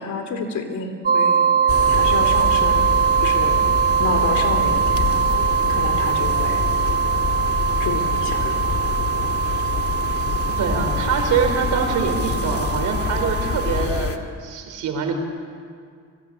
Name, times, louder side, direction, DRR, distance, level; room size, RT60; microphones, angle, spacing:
voice 1, 0.0-2.9 3.2-3.6 4.0-5.4 5.7-6.6 7.8-8.8, left 4 dB, 75° left, 6 dB, 3.6 m, -29 dB
sound 1, 1.1-13.9, right 8 dB, 30° right, 0.6 m, -21 dB
sound 2, 1.7-14.2, left 6 dB, 50° left, 2.0 m, -26 dB
voice 2, 10.6-15.1, right 6 dB, 80° right, 5 dB, 4.3 m, -24 dB
25.5 x 19.0 x 8.7 m, 2.1 s
cardioid pair, 90°, 30 cm